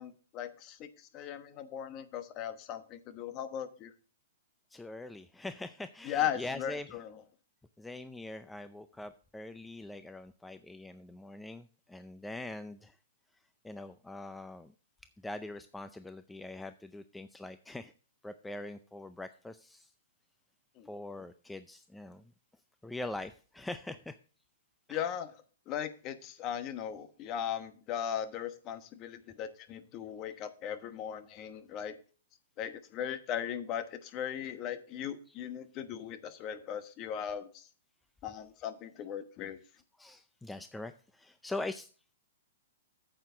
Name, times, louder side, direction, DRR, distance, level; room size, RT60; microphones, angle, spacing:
voice 1, 0.0-3.9 6.0-7.1 20.8-20.9 24.9-25.4 25.7-31.9 32.6-37.7 38.2-39.6, left 9 dB, 30° left, 10 dB, 1.1 m, -38 dB
voice 2, 4.7-7.0 7.8-13.0 13.6-14.7 15.2-17.9 18.2-19.9 20.9-22.2 22.8-24.2 24.9-25.0 40.0-41.9, left 2 dB, 5° left, 10 dB, 0.4 m, -43 dB
9.3 x 7.8 x 3.8 m, 0.38 s
hypercardioid pair, 145°, 0 cm